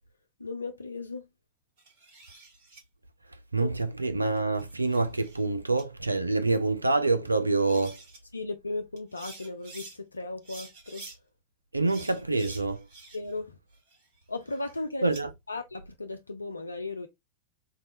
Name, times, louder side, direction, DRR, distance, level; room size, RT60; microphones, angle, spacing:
voice 1, 0.4-1.2 3.6-3.7 8.3-11.0 13.1-13.6 14.3-15.2 15.5-17.1, left 3 dB, 80° left, 0.3 m, -36 dB
sound 1, 1.8-2.8 4.4-5.4 5.8-5.9 7.3-7.4 7.6-8.2 9.0-10.0 10.4-11.2 11.9-13.4 13.7-15.2, right 3 dB, 50° right, 1.5 m, -48 dB
voice 2, 3.5-8.0 11.7-12.8 15.0-15.3, right 3 dB, 80° right, 0.3 m, -26 dB
4.0 x 2.2 x 2.6 m
figure-of-eight pair, 90°, 0 cm